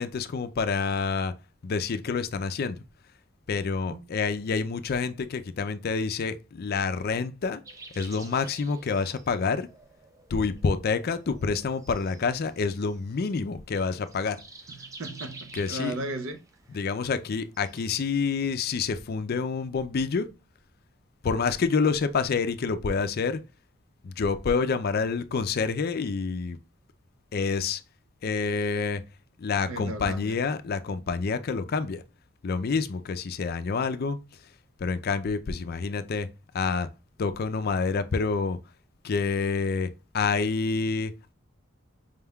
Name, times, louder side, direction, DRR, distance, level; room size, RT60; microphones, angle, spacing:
voice 1, 0.0-1.3 1.6-2.8 3.5-7.6 7.9-9.7 10.3-14.4 15.5-16.0 16.7-20.3 21.2-23.4 24.0-26.6 27.3-27.8 28.2-29.0 29.4-32.0 32.4-34.2 34.8-36.3 36.5-36.9 37.2-38.6 39.0-39.9 40.1-41.3, left 5 dB, 50° left, 0.4 m, -28 dB
sound 1, 7.6-18.7, right 3 dB, 15° right, 0.4 m, -50 dB
voice 2, 14.8-16.4 29.7-30.3, right 1 dB, 75° right, 0.6 m, -35 dB
5.0 x 3.5 x 2.2 m
head